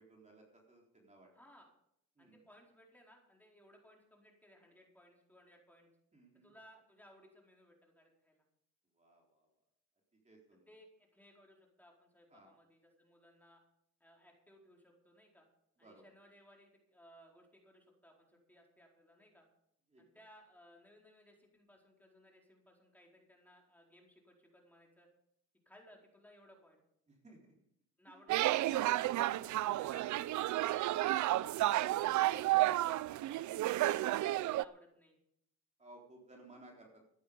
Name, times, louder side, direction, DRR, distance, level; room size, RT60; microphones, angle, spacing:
voice 1, 0.0-1.3 2.2-2.4 6.1-6.5 8.9-9.5 10.2-10.7 12.3-12.6 15.8-16.0 19.9-20.0 27.1-27.5 28.1-28.2 29.4-29.7 32.3-32.7 35.8-37.0, right 2 dB, 25° right, -1 dB, 3.8 m, -59 dB
voice 2, 1.3-1.7 2.2-5.9 6.4-8.4 10.7-13.6 14.0-15.5 15.8-19.5 20.0-25.1 25.6-26.8 28.0-29.0 29.8-30.1 30.5-31.9 33.8-35.2, equal, 5° left, -1 dB, 4.5 m, -62 dB
sound 1, 28.3-34.6, right 15 dB, 70° right, 0.5 m, -32 dB
14.5 x 11.0 x 5.2 m, 0.73 s
cardioid pair, 90°, 30 cm